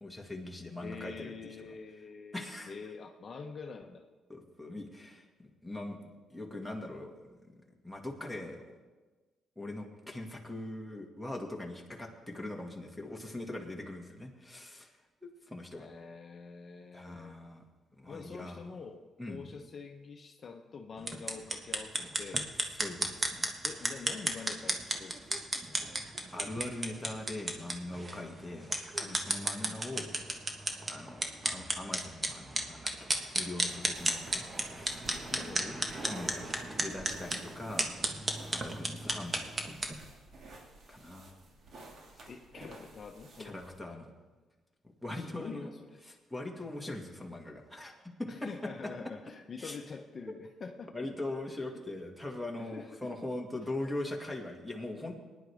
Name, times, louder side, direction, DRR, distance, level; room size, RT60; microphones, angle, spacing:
voice 1, 0.0-1.7 2.3-2.7 4.3-5.2 5.6-7.5 7.8-8.8 9.6-14.9 15.2-15.9 16.9-17.6 18.0-18.6 19.2-19.4 22.8-23.5 26.3-30.1 30.9-34.4 34.7-35.2 36.0-36.4 36.8-38.0 38.5-39.5 40.9-41.3 43.4-44.1 45.0-45.7 46.0-48.3 49.6-49.8 50.9-55.2, left 2 dB, ahead, 0 dB, 2.1 m, -41 dB
voice 2, 0.8-4.0 15.7-17.4 18.1-22.5 23.6-25.3 29.5-29.8 35.3-35.9 38.8-39.0 42.3-44.0 45.1-46.0 48.3-51.1 51.7-51.8 52.6-53.1, left 5 dB, 45° left, 3 dB, 0.9 m, -46 dB
sound 1, 21.0-39.9, right 2 dB, 25° right, 1.3 m, -34 dB
sound 2, 33.9-43.8, right 2 dB, 60° right, 2.3 m, -52 dB
19.0 x 10.0 x 3.5 m, 1.3 s
cardioid pair, 90°, 0 cm